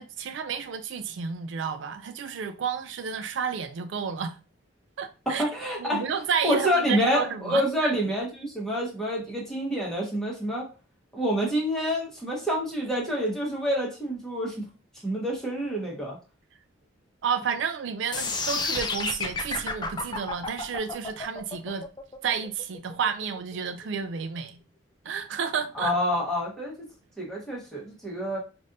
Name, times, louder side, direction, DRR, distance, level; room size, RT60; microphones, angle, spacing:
voice 1, 0.0-4.4 5.0-5.5 5.8-7.9 17.2-21.9 22.2-24.6 25.0-25.9, right 6 dB, 70° right, 0.4 m, -31 dB
voice 2, 5.4-6.0 6.4-10.7 11.1-14.6 15.0-16.2 25.8-26.7 27.2-28.4, equal, 5° left, 1.2 m, -27 dB
sound 1, 18.1-24.2, left 3 dB, 20° left, 0.4 m, -31 dB
5.1 x 2.5 x 2.6 m
head